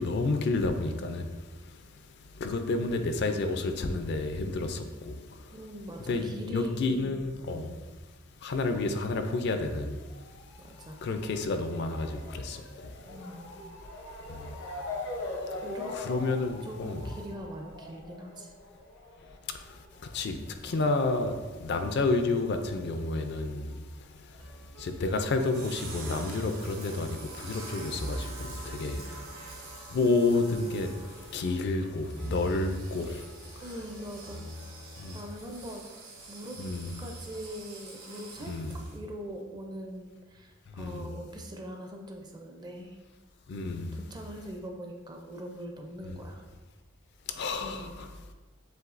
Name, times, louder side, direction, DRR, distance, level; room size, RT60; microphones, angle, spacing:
voice 1, 0.0-5.6 6.1-7.7 8.4-10.4 11.0-13.0 14.3-14.6 15.5-15.6 15.9-17.1 19.5-24.5 24.8-33.6 35.0-35.2 36.6-36.9 38.4-38.7 40.7-41.1 43.5-44.0 46.0-46.1 47.3-48.1, left 3 dB, 55° left, 0.4 m, -31 dB
voice 2, 5.5-7.2 7.5-7.8 10.6-11.0 13.0-13.5 15.6-16.0 16.6-18.5 28.9-29.2 33.6-34.7 35.1-36.6 37.0-43.0 43.9-46.4 47.6-48.0, equal, 20° right, 0.5 m, -42 dB
Motor vehicle (road) / Siren, 9.2-22.2 22.5-23.7 24.3-24.4 24.6-24.7, left 2 dB, 80° left, 0.8 m, -43 dB
sound 1, 24.4-35.2, right 1 dB, 70° right, 0.7 m, -45 dB
sound 2, 25.1-39.0, right 2 dB, 85° right, 1.4 m, -47 dB
7.6 x 2.7 x 2.5 m
head